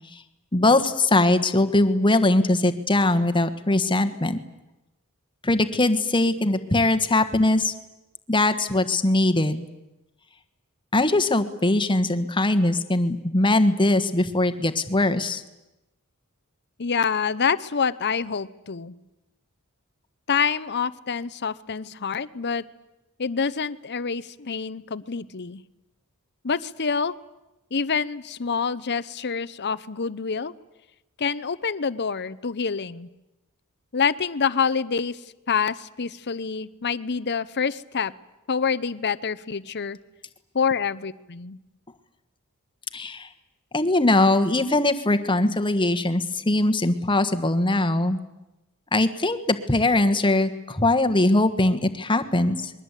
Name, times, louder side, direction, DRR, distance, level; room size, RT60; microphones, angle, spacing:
voice 1, 0.5-4.4 5.4-7.7 8.3-9.7 10.9-15.4 42.9-43.3 43.7-48.2 48.9-52.7, left 2 dB, 20° left, 9 dB, 1.4 m, -21 dB
voice 2, 16.8-19.0 20.3-22.6 23.2-25.6 26.4-27.1 27.7-30.5 31.2-33.1 33.9-35.2 35.5-38.1 38.5-40.0 40.5-41.6, left 6 dB, 50° left, 16 dB, 0.8 m, -26 dB
28.0 x 22.0 x 8.3 m, 0.97 s
head